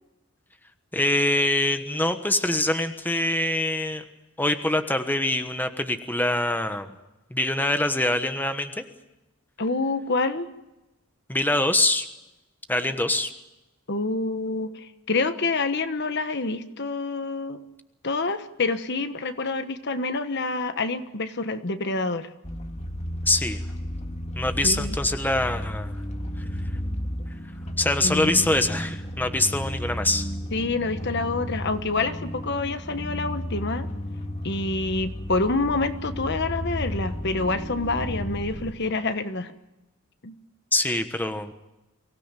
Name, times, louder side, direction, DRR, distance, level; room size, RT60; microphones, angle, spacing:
voice 1, 0.9-4.0 4.4-6.9 7.3-8.8 11.3-12.1 12.7-13.3 23.2-23.6 24.4-26.0 27.8-30.3 40.7-41.5, left 2 dB, 10° left, 8 dB, 1.2 m, -24 dB
voice 2, 9.6-10.5 12.8-12.9 13.9-17.6 18.0-22.3 24.6-25.0 28.0-28.5 30.5-33.9 34.4-39.5 40.2-40.3, left 3 dB, 55° left, 10 dB, 1.3 m, -27 dB
sound 1, 22.4-38.7, equal, 30° left, 2.0 m, -33 dB
24.0 x 17.0 x 9.1 m, 0.97 s
head